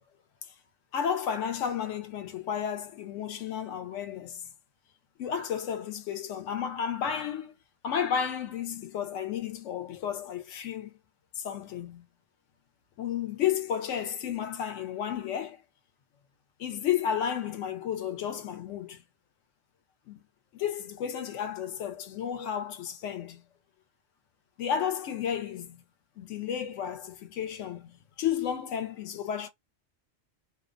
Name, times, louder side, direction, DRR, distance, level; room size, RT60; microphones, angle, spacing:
voice 1, 0.9-4.5 5.2-7.6 7.8-10.9 11.4-12.0 13.0-15.6 16.6-19.0 20.1-20.2 20.5-23.4 24.6-25.8 26.2-29.5, left 8 dB, 75° left, 0.9 m, -32 dB
2.5 x 2.1 x 2.4 m
omnidirectional pair, 1.3 m